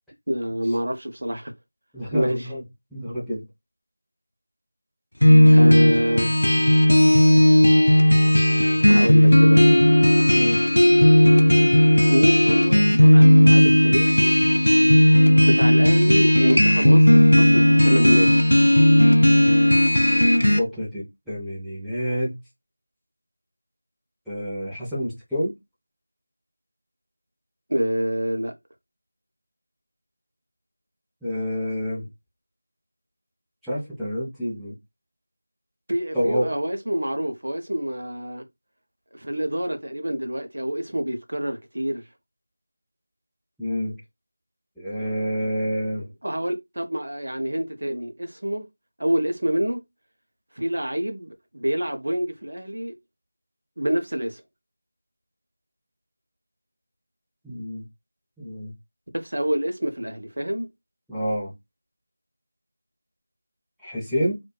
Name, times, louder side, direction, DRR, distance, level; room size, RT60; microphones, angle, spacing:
voice 1, 0.3-1.5 2.1-2.5 5.5-6.4 8.8-9.7 12.1-14.4 15.4-18.3 27.7-28.5 35.9-38.4 39.1-42.0 46.2-48.6 49.0-49.8 50.6-52.9 53.8-54.4 59.1-60.7, equal, 60° right, 0.6 m, -26 dB
voice 2, 1.9-2.6 2.9-3.4 10.3-10.6 20.6-22.4 24.3-25.5 31.2-32.1 33.6-34.7 36.1-36.5 43.6-43.9 44.8-46.1 57.4-57.8 58.4-58.7 61.1-61.5 63.8-64.4, equal, ahead, 0.5 m, -28 dB
sound 1, 5.2-20.6, left 1 dB, 75° left, 0.4 m, -15 dB
2.5 x 2.2 x 2.2 m
figure-of-eight pair, 170°, 0 cm